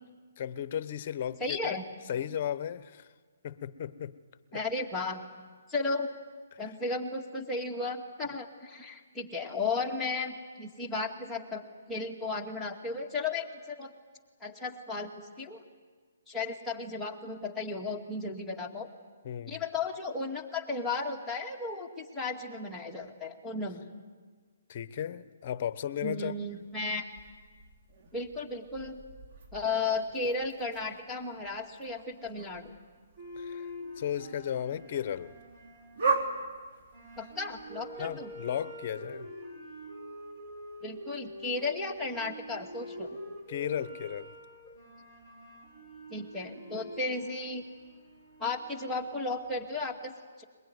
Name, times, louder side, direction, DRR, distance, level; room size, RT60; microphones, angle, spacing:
voice 1, 0.4-1.8 2.1-3.1 3.4-4.1 4.5-4.6 6.5-6.7 19.2-19.6 24.7-26.7 33.4-35.3 38.0-39.3 43.5-44.3, left 9 dB, 45° left, 15 dB, 1.0 m, -35 dB
voice 2, 1.4-1.8 4.5-5.2 5.7-6.1 6.6-11.6 11.9-13.9 14.4-15.6 16.3-18.9 19.5-23.9 26.0-27.1 28.1-29.0 29.5-32.7 37.2-38.3 40.8-43.2 46.1-47.6 48.4-50.4, left 3 dB, 5° left, -3 dB, 2.1 m, -34 dB
sound 1, 26.2-38.6, right 4 dB, 45° right, 3.3 m, -40 dB
sound 2, 33.2-49.8, equal, 25° right, 6.8 m, -46 dB
22.0 x 21.5 x 9.4 m, 1.5 s
hypercardioid pair, 150°, 0 cm